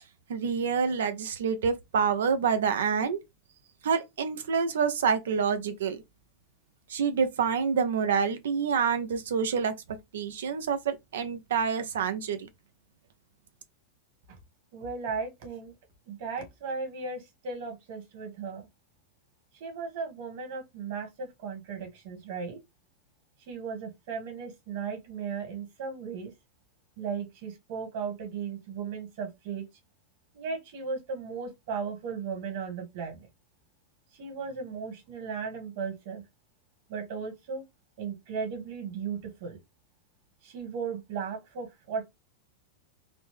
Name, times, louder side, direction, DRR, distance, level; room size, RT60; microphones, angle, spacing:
voice 1, 0.3-3.2 3.8-6.0 6.9-9.7 10.1-12.5, right 6 dB, 85° right, 0.7 m, -27 dB
voice 2, 14.7-15.7 16.1-18.7 19.6-22.6 23.5-26.3 27.0-29.6 30.3-33.3 34.1-36.2 36.9-37.6 38.0-39.6 40.4-42.1, right 5 dB, 60° right, 1.7 m, -36 dB
4.0 x 2.1 x 3.2 m
hypercardioid pair, 125°, 0 cm